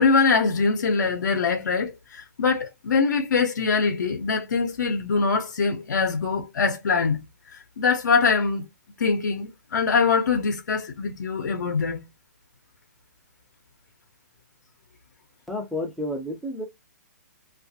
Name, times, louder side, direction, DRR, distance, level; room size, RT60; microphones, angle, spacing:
voice 1, 0.0-7.2 7.5-8.7 9.0-12.0, left 5 dB, 80° left, 0.6 m, -23 dB
voice 2, 15.5-16.7, left 1 dB, ahead, 0.3 m, -30 dB
2.4 x 2.3 x 2.6 m
hypercardioid pair, 165°, 10 cm